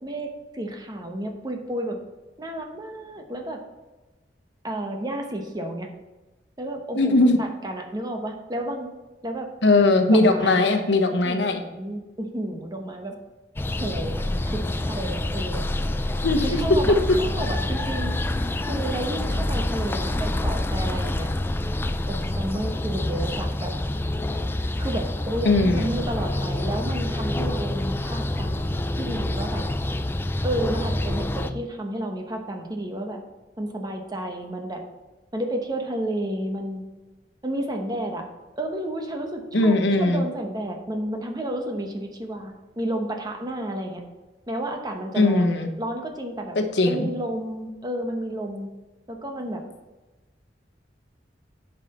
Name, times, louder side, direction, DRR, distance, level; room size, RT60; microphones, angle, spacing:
voice 1, 0.0-2.0 2.4-3.6 4.6-5.9 6.6-8.9 9.2-9.5 10.1-10.6 11.2-13.1 13.8-15.6 16.4-18.1 18.6-21.3 22.1-23.7 24.8-29.6 30.4-33.2 33.6-34.8 35.3-36.8 37.4-38.3 38.6-44.0 44.5-46.6 46.9-48.7 49.1-49.6, right 1 dB, 20° right, 3 dB, 0.9 m, -31 dB
voice 2, 6.9-7.4 9.6-11.6 16.2-16.6 25.4-25.9 39.5-40.2 45.2-45.7 46.5-47.1, left 2 dB, 75° left, 5 dB, 1.0 m, -19 dB
sound 1, 13.6-31.5, left 1 dB, 10° left, 0.4 m, -27 dB
9.1 x 5.7 x 4.2 m, 1.2 s
head